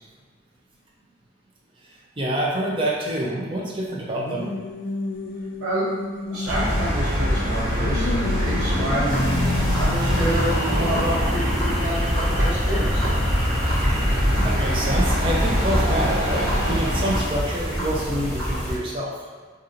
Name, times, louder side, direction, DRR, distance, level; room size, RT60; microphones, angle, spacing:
voice 1, 2.2-4.5 14.4-19.1, right 1 dB, 30° right, -3 dB, 0.5 m, -27 dB
sound 1, 4.2-7.0 7.4-8.9, left 3 dB, 65° left, 0.4 m, -31 dB
voice 2, 5.6-5.9 6.3-9.2 9.8-13.1, right 1 dB, 90° right, -13 dB, 1.0 m, -28 dB
sound 2, 6.5-17.2, equal, 45° right, 1.3 m, -23 dB
sound 3, 9.1-18.8, equal, 5° left, 1.0 m, -28 dB
4.1 x 2.6 x 2.5 m, 1.4 s
head